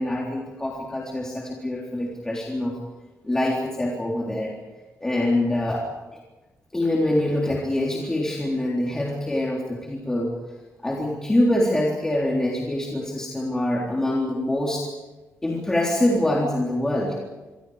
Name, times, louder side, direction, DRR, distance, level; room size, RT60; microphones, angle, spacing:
voice 1, 0.0-2.7 3.2-4.5 5.0-5.9 6.7-10.3 10.8-14.9 15.4-17.2, left 1 dB, 10° left, -3 dB, 3.6 m, -24 dB
28.0 x 25.0 x 5.1 m, 1.2 s
wide cardioid pair, 170°, 5 cm